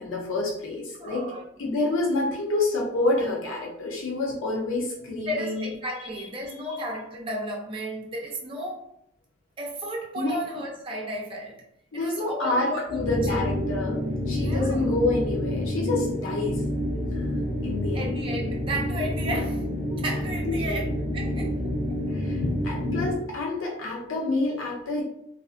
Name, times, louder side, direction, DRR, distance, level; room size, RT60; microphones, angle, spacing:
voice 1, 0.0-1.3 1.6-5.6 10.2-10.4 11.9-16.6 17.1-17.3 17.6-18.1 20.5-20.8 22.1-25.0, left 2 dB, 85° left, -1 dB, 0.6 m, -28 dB
voice 2, 1.0-1.4 5.3-8.9 9.6-11.6 11.9-13.5 14.4-14.9 17.9-19.7 20.0-22.0, right 1 dB, 25° right, -1 dB, 0.5 m, -34 dB
sound 1, 12.9-23.3, left 1 dB, ahead, 1.1 m, -28 dB
2.4 x 2.3 x 2.4 m, 0.75 s
head